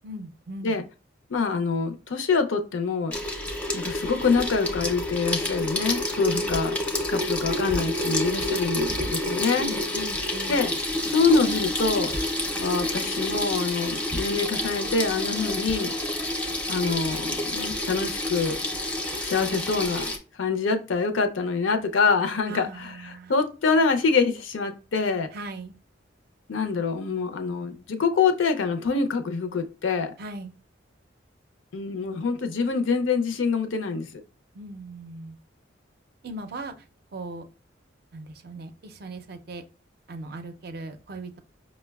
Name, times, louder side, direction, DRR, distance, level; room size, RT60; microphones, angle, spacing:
voice 1, 0.0-0.7 6.3-6.6 9.6-10.6 22.5-23.3 25.3-25.7 30.2-30.5 34.5-35.4 36.2-36.7 37.1-37.5 38.1-39.6 40.1-41.4, right 1 dB, 55° right, 0.4 m, -38 dB
voice 2, 1.3-3.2 3.7-6.7 7.1-9.7 10.5-10.7 11.0-12.1 12.6-15.9 16.7-18.6 19.2-20.0 20.4-25.3 26.5-30.1 31.7-34.1, left 4 dB, 85° left, 0.5 m, -25 dB
Water tap faucet / Sink (filling or washing), 3.1-20.2, left 1 dB, 5° left, 0.4 m, -29 dB
5.2 x 2.1 x 2.2 m
head